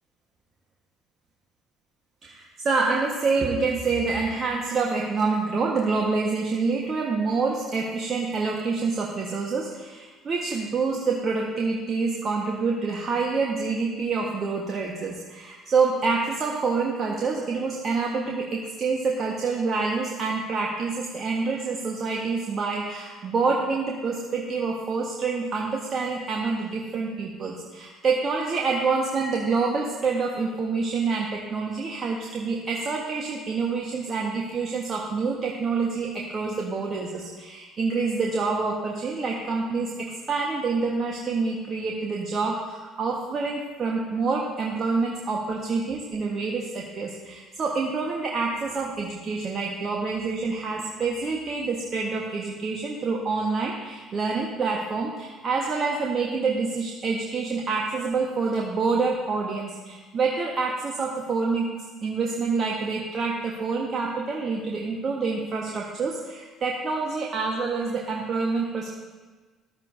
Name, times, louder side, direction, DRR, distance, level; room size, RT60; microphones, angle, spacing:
voice 1, 2.2-61.7 62.0-68.9, right 4 dB, 40° right, -1 dB, 1.4 m, -27 dB
14.0 x 11.5 x 2.7 m, 1.3 s
figure-of-eight pair, 55°, 0 cm